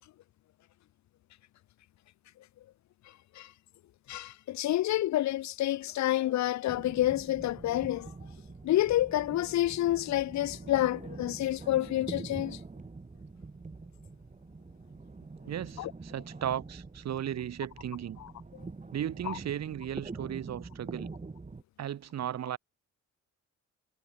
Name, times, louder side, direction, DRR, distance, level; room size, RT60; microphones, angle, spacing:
voice 1, 4.1-8.1 8.6-12.6 15.8-15.9 18.2-18.3 19.3-19.4, left 14 dB, 65° left, 0.7 m, -29 dB
sound 1, 6.7-21.6, right 3 dB, 25° right, 5.1 m, -45 dB
voice 2, 15.5-18.2 18.9-21.1 21.8-22.6, right 10 dB, 60° right, 1.9 m, -36 dB
cardioid pair, 90°, 30 cm